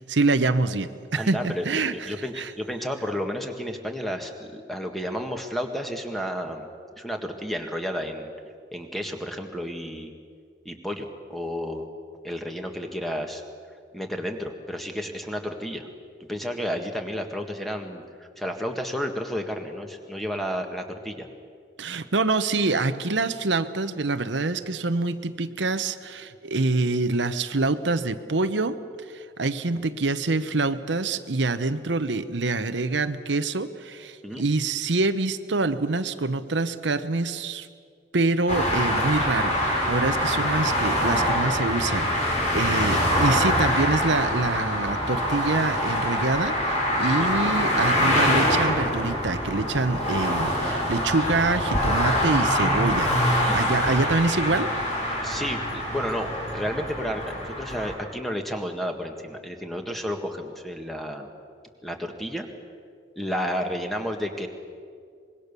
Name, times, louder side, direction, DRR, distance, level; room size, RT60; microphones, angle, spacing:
voice 1, 0.1-2.5 21.8-28.8 29.1-37.7 38.1-53.1 53.5-54.7, right 3 dB, 85° right, 10 dB, 0.9 m, -26 dB
voice 2, 1.1-6.7 7.0-8.3 8.7-10.1 10.7-11.9 12.2-13.4 13.9-15.9 16.3-21.3 34.2-34.4 40.2-40.5 47.1-47.3 53.5-53.6 55.2-61.3 61.8-62.5 63.2-64.5, equal, ahead, 4 dB, 1.8 m, -32 dB
sound 1, 38.5-57.9, equal, 40° left, 5.0 m, -24 dB
25.0 x 21.5 x 6.9 m, 2.2 s
head